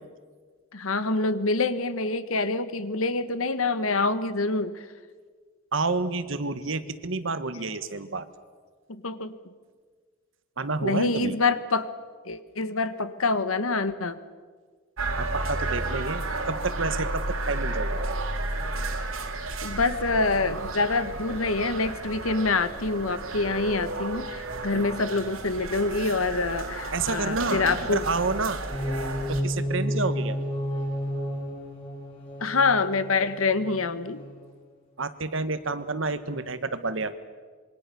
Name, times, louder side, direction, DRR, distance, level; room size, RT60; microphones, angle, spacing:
voice 1, 0.7-4.8 7.5-7.6 8.9-9.3 10.8-11.9 12.3-14.2 19.6-28.0 32.4-34.2, left 3 dB, 85° left, 12 dB, 1.4 m, -26 dB
voice 2, 5.7-8.3 10.6-11.4 15.2-18.2 24.7-24.9 26.9-28.7 29.3-30.4 35.0-37.1, right 3 dB, 70° right, 12 dB, 1.5 m, -29 dB
sound 1, 15.0-29.4, right 2 dB, 90° right, 2.9 m, -32 dB
sound 2, 28.5-34.5, equal, 25° left, 6.0 m, -32 dB
27.0 x 23.0 x 7.0 m, 1.5 s
head